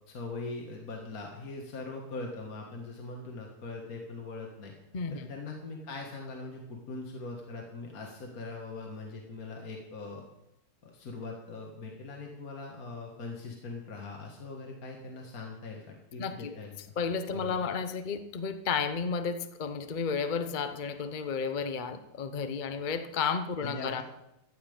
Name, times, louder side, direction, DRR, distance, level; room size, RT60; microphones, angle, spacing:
voice 1, 0.1-4.7 5.1-10.3 10.8-16.9 17.3-17.5 23.6-24.0, left 3 dB, 60° left, 1 dB, 2.1 m, -41 dB
voice 2, 4.9-5.3 16.2-16.5 17.0-24.0, left 5 dB, 40° left, 10 dB, 0.7 m, -32 dB
15.0 x 5.8 x 8.6 m, 0.88 s
omnidirectional pair, 1.8 m